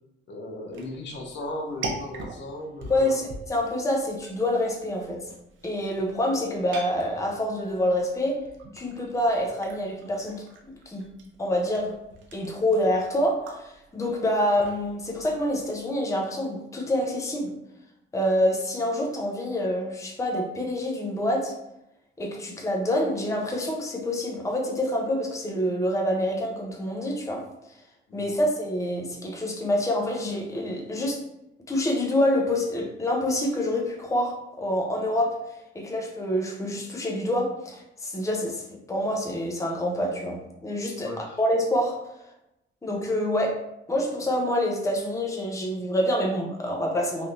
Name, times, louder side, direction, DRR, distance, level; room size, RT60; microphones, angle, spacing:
voice 1, 0.3-3.1 28.1-28.4 41.0-41.4, left 1 dB, 65° left, 1 dB, 0.7 m, -36 dB
sound 1, 0.7-15.8, right 3 dB, 75° right, 0.6 m, -43 dB
voice 2, 2.9-5.2 5.6-8.4 8.7-11.1 11.4-12.0 12.3-17.5 18.1-21.5 22.2-27.4 28.1-31.2 31.7-35.4 35.7-42.0 42.8-43.6 43.9-47.3, left 1 dB, 15° left, 0 dB, 0.6 m, -27 dB
3.3 x 2.7 x 2.5 m, 0.85 s
cardioid pair, 90°, 20 cm